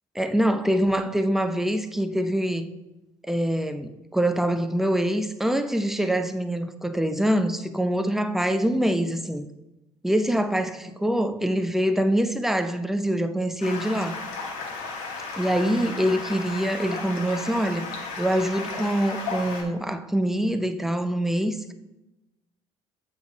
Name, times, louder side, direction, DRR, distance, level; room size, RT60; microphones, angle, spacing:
voice 1, 0.2-2.7 3.3-9.5 10.0-14.2 15.3-17.9 18.2-21.7, equal, ahead, 0.6 m, -24 dB
Stream, 13.6-19.6, left 4 dB, 70° left, 1.3 m, -34 dB
8.1 x 3.6 x 4.6 m
figure-of-eight pair, 50°, 16 cm